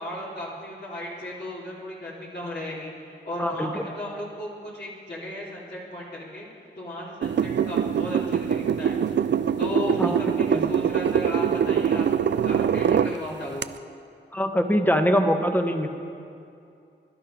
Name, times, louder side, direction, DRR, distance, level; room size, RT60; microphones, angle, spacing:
voice 1, 0.0-2.9 3.2-6.5 6.8-9.0 9.6-12.0 12.4-13.6, left 1 dB, 55° left, -6 dB, 3.4 m, -35 dB
voice 2, 3.4-3.8 10.0-10.2 10.5-10.7 14.3-15.9, equal, 10° left, 5 dB, 1.3 m, -23 dB
sound 1, 7.2-13.1 13.6-13.7, right 8 dB, 60° right, 0.5 m, -23 dB
17.5 x 11.5 x 5.2 m, 2.5 s
cardioid pair, 55°, 20 cm